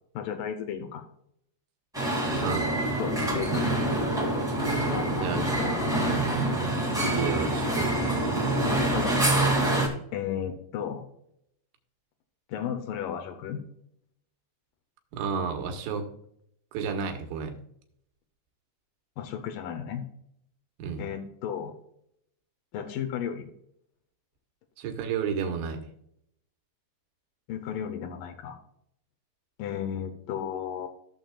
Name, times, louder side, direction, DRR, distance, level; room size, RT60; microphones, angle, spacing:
voice 1, 0.1-1.0 3.0-3.7 4.9-6.0 8.9-9.4 10.1-11.1 12.5-13.6 19.2-20.1 21.0-21.7 22.7-23.5 27.5-28.6 29.6-30.9, left 8 dB, 85° left, 6 dB, 1.9 m, -34 dB
sound 1, 1.9-9.9, right 1 dB, 5° right, 0.4 m, -26 dB
voice 2, 6.9-8.1 15.1-16.1 16.7-17.5 20.8-21.0 24.8-25.8, right 6 dB, 85° right, 4 dB, 3.5 m, -31 dB
15.0 x 7.3 x 2.4 m, 0.71 s
omnidirectional pair, 5.2 m